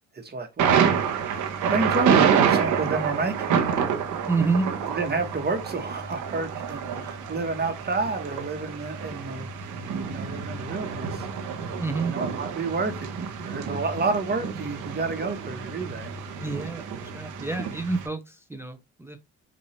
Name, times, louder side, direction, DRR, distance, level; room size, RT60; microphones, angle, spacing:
voice 1, 0.2-0.9 1.2-3.6 4.9-9.5 10.0-11.3 12.0-12.9 13.4-16.1, right 3 dB, 35° right, 1.2 m, -29 dB
Thunder, 0.6-18.1, right 7 dB, 85° right, 1.1 m, -28 dB
voice 2, 4.3-4.7 11.8-12.1 16.4-19.2, right 4 dB, 10° right, 0.6 m, -28 dB
5.7 x 2.7 x 3.1 m
cardioid pair, 90°, 30 cm